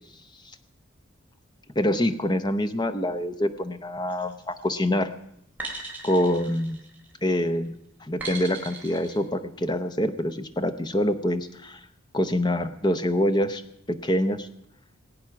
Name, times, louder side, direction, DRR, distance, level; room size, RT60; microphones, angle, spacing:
voice 1, 1.8-5.1 6.0-6.8 7.2-7.7 8.0-11.8 12.1-13.6 13.9-14.5, left 1 dB, 20° left, 10 dB, 0.7 m, -25 dB
sound 1, 4.1-4.5 5.6-7.3 8.2-9.2, right 3 dB, 10° right, 3.3 m, -38 dB
19.5 x 8.7 x 5.9 m, 0.77 s
head